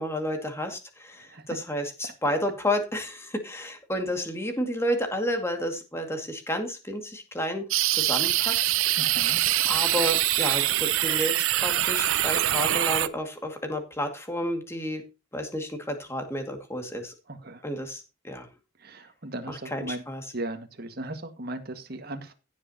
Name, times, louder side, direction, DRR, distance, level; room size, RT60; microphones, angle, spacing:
voice 1, 0.0-7.7 7.9-8.7 9.7-15.0 15.3-17.1 17.6-18.5 19.5-20.2, equal, 15° left, 5 dB, 2.1 m, -31 dB
voice 2, 1.2-1.6 9.0-9.4 17.3-17.6 18.8-20.0 20.3-22.3, right 1 dB, 50° right, 6 dB, 1.8 m, -37 dB
sound 1, 7.7-13.1, right 13 dB, 85° right, 0.7 m, -24 dB
16.0 x 7.4 x 2.9 m, 0.30 s
head